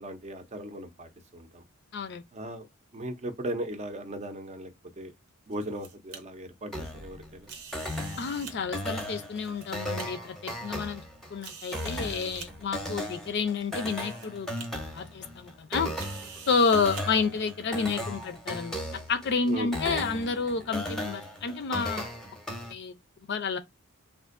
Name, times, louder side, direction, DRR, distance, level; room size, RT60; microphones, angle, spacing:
voice 1, 0.0-1.6 2.3-2.7 2.9-4.7 5.0-5.1 5.5-7.5 19.5-19.7, right 1 dB, 30° right, 0.5 m, -37 dB
voice 2, 1.9-2.2 8.2-11.0 11.3-14.7 14.9-15.9 16.5-22.1 22.7-22.9 23.3-23.6, left 5 dB, 55° left, 0.5 m, -30 dB
sound 1, 5.3-6.2 7.4-8.5 9.2-10.1 10.7-10.8 11.4-12.5 13.4-13.5 13.9-14.3 14.6-14.7 16.0-17.0, right 6 dB, 85° right, 0.8 m, -45 dB
sound 2, 6.7-22.7, equal, ahead, 0.7 m, -37 dB
3.5 x 2.5 x 2.5 m
head